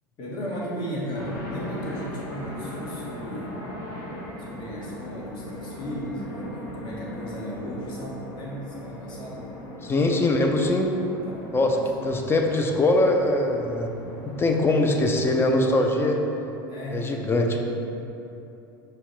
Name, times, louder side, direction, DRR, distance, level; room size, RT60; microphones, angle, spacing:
voice 1, 0.2-3.6 4.4-9.5 11.1-11.7 16.7-17.3, equal, 45° left, -5 dB, 1.2 m, -35 dB
sound 1, 1.1-16.1, left 1 dB, 70° left, 1.3 m, -39 dB
voice 2, 9.8-10.9 11.5-11.8 12.0-16.2 16.9-17.6, left 2 dB, 20° left, 2 dB, 0.5 m, -22 dB
5.5 x 2.2 x 3.9 m, 2.9 s
hypercardioid pair, 80°, 11 cm